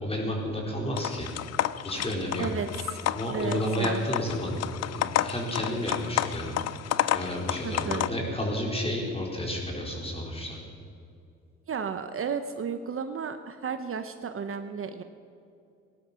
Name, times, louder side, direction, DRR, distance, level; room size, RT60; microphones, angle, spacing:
voice 1, 0.0-1.3 1.8-2.5 3.1-4.6 4.8-6.5 7.1-10.6, left 1 dB, 20° left, -1 dB, 4.4 m, -31 dB
sound 1, 1.0-8.1, left 12 dB, 60° left, 0.5 m, -31 dB
voice 2, 2.4-3.0 3.3-4.0 7.6-8.1 11.7-15.0, right 6 dB, 45° right, 8 dB, 0.9 m, -33 dB
18.5 x 11.5 x 5.7 m, 2.5 s
cardioid pair, 90°, 30 cm